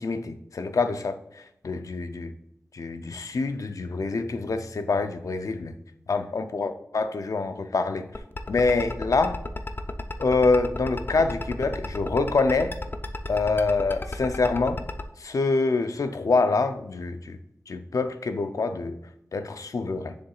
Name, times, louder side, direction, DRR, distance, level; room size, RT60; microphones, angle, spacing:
voice 1, 0.0-2.3 2.7-5.7 6.1-8.0 8.5-9.4 10.2-12.8 13.3-14.8 15.2-17.4 17.7-19.0 19.3-20.1, left 3 dB, 85° left, 0.5 m, -26 dB
sound 1, 8.1-15.0, left 2 dB, 40° left, 0.5 m, -33 dB
6.7 x 6.6 x 2.4 m
wide cardioid pair, 75°, 6 cm